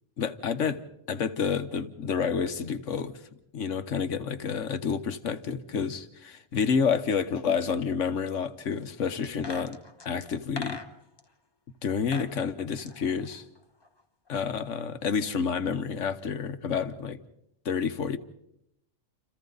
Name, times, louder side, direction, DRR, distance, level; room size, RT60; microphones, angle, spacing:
voice 1, 0.2-0.8 1.1-3.2 3.5-9.8 10.0-10.8 11.8-13.4 14.3-17.2 17.6-18.2, left 6 dB, 75° left, 11 dB, 1.4 m, -29 dB
sound 1, 9.2-11.2 11.9-12.3 12.6-14.0 14.3-14.4, left 3 dB, 20° left, 1.1 m, -41 dB
29.0 x 28.0 x 4.0 m, 0.81 s
omnidirectional pair, 1.3 m